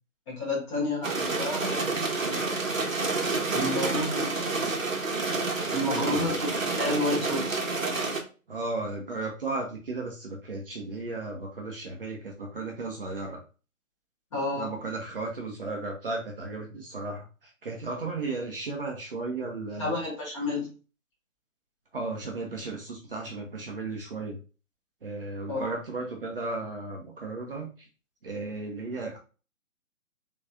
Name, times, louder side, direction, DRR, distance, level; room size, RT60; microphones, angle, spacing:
voice 1, 0.3-2.4 3.5-4.4 5.7-7.6 14.3-14.7 19.8-20.7 25.5-25.7, left 2 dB, 20° left, -5 dB, 1.7 m, -31 dB
sound 1, 1.0-8.2, right 3 dB, 70° right, 1.1 m, -29 dB
voice 2, 5.9-6.4 8.5-13.4 14.6-20.0 21.9-24.4 25.0-27.9 28.2-29.2, right 3 dB, 40° right, 0 dB, 0.8 m, -35 dB
4.0 x 3.1 x 2.4 m, 0.34 s
figure-of-eight pair, 140°, 42 cm